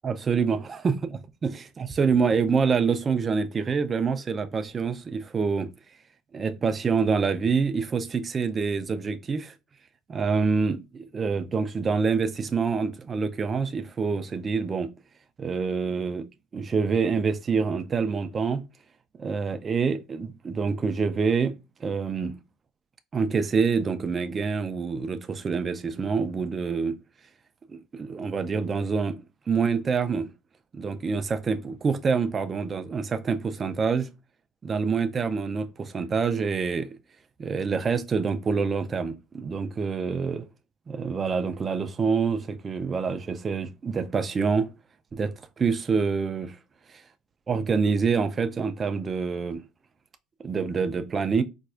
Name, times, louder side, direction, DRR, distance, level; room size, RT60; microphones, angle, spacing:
voice 1, 0.0-1.0 1.4-5.7 6.3-9.5 10.1-14.9 15.4-16.2 16.5-18.6 19.2-21.5 21.8-22.4 23.1-27.0 27.7-30.3 30.7-34.1 34.6-36.9 37.4-40.5 40.9-44.7 45.1-46.6 47.5-49.6 50.4-51.4, right 5 dB, 30° right, 0.4 m, -26 dB
4.2 x 2.3 x 2.4 m
cardioid pair, 120°, 0 cm